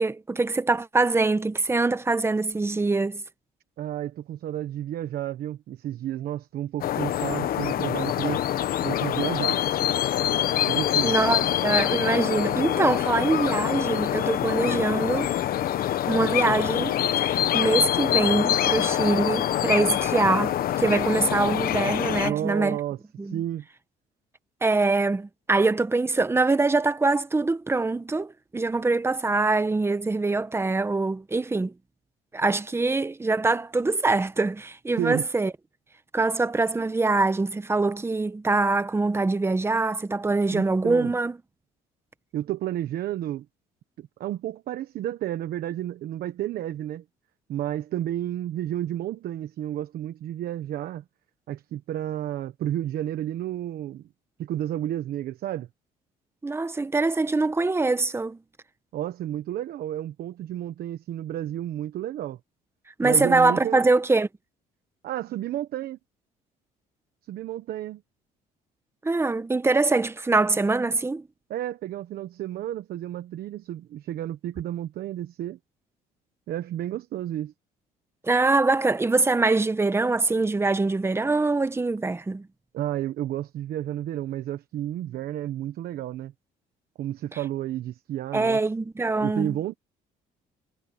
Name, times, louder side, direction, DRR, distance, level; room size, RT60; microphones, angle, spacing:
voice 1, 0.0-3.2 11.0-15.3 16.1-22.8 23.2-23.4 24.6-31.7 32.3-35.5 36.1-41.3 56.4-58.4 63.0-64.3 69.0-71.2 78.2-82.5 88.3-89.7, right 3 dB, 15° right, 1.1 m, -24 dB
voice 2, 3.8-8.4 8.8-9.6 10.7-11.1 22.2-23.0 23.2-23.7 35.0-35.3 40.5-41.1 42.3-43.5 44.0-47.0 47.5-51.0 51.5-54.1 54.4-55.7 58.9-62.4 63.0-63.9 65.0-66.0 67.3-68.0 71.5-75.6 76.5-77.5 82.7-86.3 87.0-88.6 89.2-89.7, right 12 dB, 65° right, 1.1 m, -31 dB
sound 1, 6.8-22.3, left 11 dB, 60° left, 1.2 m, -25 dB
cardioid pair, 110°, 17 cm